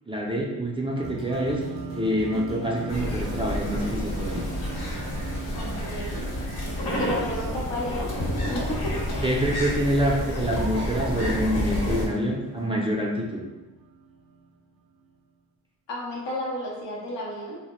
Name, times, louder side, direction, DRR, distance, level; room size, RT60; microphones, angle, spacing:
voice 1, 0.1-1.6 1.9-4.4 9.2-13.4, equal, 15° right, -2 dB, 0.4 m, -26 dB
sound 1, 1.0-13.2 13.8-13.9, left 1 dB, 30° left, 0.7 m, -43 dB
sound 2, 1.0-14.9, right 4 dB, 65° right, 0.5 m, -41 dB
sound 3, 2.9-12.1, equal, 60° left, 0.9 m, -29 dB
voice 2, 5.5-6.3 7.0-9.1 15.9-17.6, left 1 dB, 85° left, -3 dB, 0.7 m, -33 dB
2.1 x 2.0 x 2.9 m, 1.1 s
cardioid pair, 55°, 42 cm